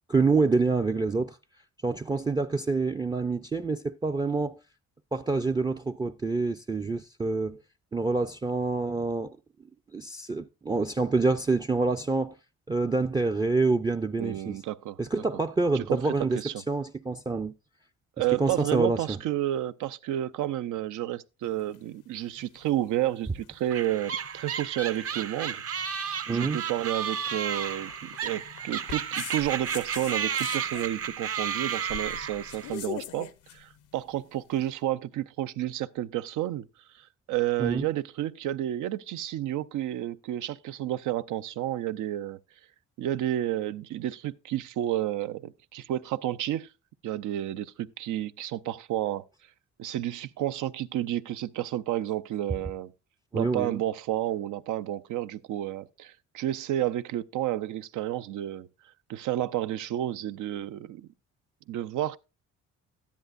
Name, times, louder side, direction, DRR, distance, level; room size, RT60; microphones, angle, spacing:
voice 1, 0.1-1.4 1.8-4.6 5.1-7.6 7.9-9.4 9.9-12.3 12.7-14.6 15.0-16.4 16.7-17.5 18.4-19.2 26.3-26.6 37.6-37.9 53.3-53.8, right 3 dB, 15° right, 0.4 m, -27 dB
voice 2, 14.2-15.0 15.7-16.5 18.2-25.6 26.3-36.7 36.9-42.4 43.0-46.7 47.0-49.3 49.8-52.9 53.3-58.7 59.1-61.1 61.7-62.2, right 13 dB, 80° right, 0.6 m, -31 dB
sound 1, 21.4-34.6, left 11 dB, 90° left, 0.9 m, -45 dB
sound 2, 23.7-32.8, right 7 dB, 50° right, 0.8 m, -33 dB
12.5 x 10.5 x 2.5 m
cardioid pair, 90°, 30 cm